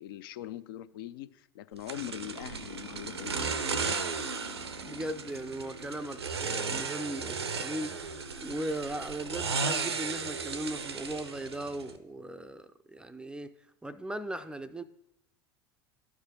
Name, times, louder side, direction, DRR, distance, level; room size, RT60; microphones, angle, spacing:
voice 1, 0.0-3.8, left 13 dB, 60° left, 0.4 m, -42 dB
sound 1, 1.9-12.0, right 4 dB, 85° right, 0.5 m, -35 dB
voice 2, 4.8-13.5 13.8-14.8, right 1 dB, 5° right, 0.4 m, -38 dB
12.5 x 4.7 x 2.8 m
figure-of-eight pair, 75°, 13 cm